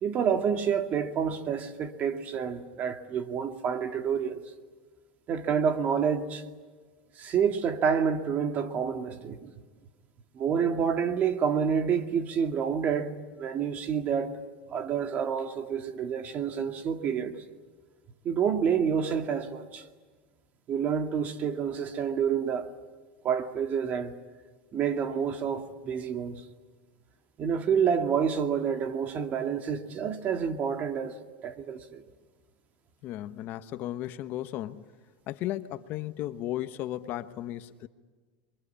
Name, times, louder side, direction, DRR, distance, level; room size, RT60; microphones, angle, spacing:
voice 1, 0.0-4.4 5.3-6.4 7.2-9.5 10.3-14.4 14.7-17.3 18.2-19.9 20.7-22.7 23.2-24.1 24.7-26.4 27.4-31.2 31.4-32.0, right 7 dB, 35° right, 2.2 m, -28 dB
voice 2, 33.0-34.8 35.3-37.9, left 14 dB, 50° left, 1.2 m, -35 dB
29.0 x 23.5 x 8.6 m
supercardioid pair, 140°, 5 cm